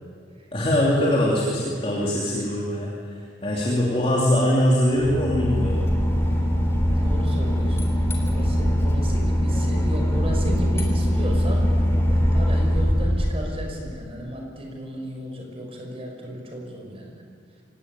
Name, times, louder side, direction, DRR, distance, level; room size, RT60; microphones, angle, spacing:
voice 1, 0.5-5.8, left 1 dB, 30° left, -3 dB, 3.1 m, -22 dB
Boat Water vehicle / Engine, 4.9-13.9, equal, 15° left, 3.4 m, -22 dB
voice 2, 6.9-17.2, equal, 30° right, 1 dB, 5.5 m, -34 dB
24.5 x 17.0 x 9.7 m, 2.1 s
head